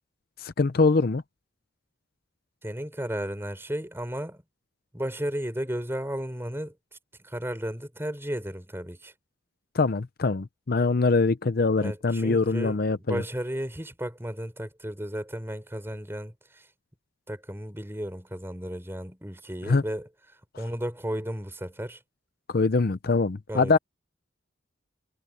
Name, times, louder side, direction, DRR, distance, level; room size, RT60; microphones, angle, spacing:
voice 1, 0.4-1.2 9.7-13.2 19.7-19.8 22.5-23.8, left 3 dB, 50° left, 0.6 m, -23 dB
voice 2, 2.6-4.4 4.9-6.7 7.2-9.1 11.8-12.8 13.1-16.7 17.3-20.1 20.6-22.0 23.5-23.8, equal, 10° right, 3.9 m, -34 dB
head